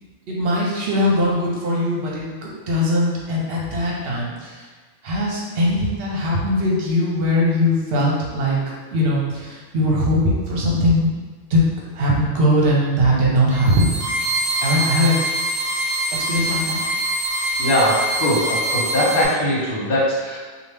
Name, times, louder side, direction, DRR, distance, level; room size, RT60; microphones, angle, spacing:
voice 1, 0.3-4.6 5.0-8.6 8.9-11.1 11.5-11.6 11.9-13.9 14.6-15.1 16.1-16.8, left 1 dB, 50° right, -4 dB, 0.8 m, -20 dB
sound 1, 13.5-19.3, right 1 dB, 50° left, 0.9 m, -24 dB
voice 2, 17.6-20.4, left 1 dB, 80° left, -5 dB, 1.4 m, -20 dB
2.8 x 2.4 x 3.3 m, 1.4 s
omnidirectional pair, 1.5 m